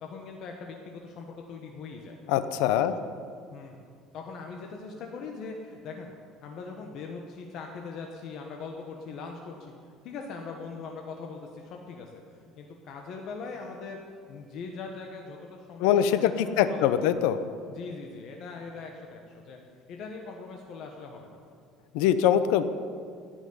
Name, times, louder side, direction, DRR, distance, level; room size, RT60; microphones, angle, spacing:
voice 1, 0.0-2.2 2.8-3.0 3.5-3.7 4.1-9.7 10.0-17.1 17.7-19.6 19.9-21.4, left 4 dB, 50° left, 2 dB, 1.3 m, -41 dB
voice 2, 2.3-2.9 15.8-17.4 21.9-22.6, left 10 dB, 85° left, 12 dB, 0.7 m, -23 dB
17.5 x 6.2 x 9.6 m, 2.2 s
cardioid pair, 160°, 0 cm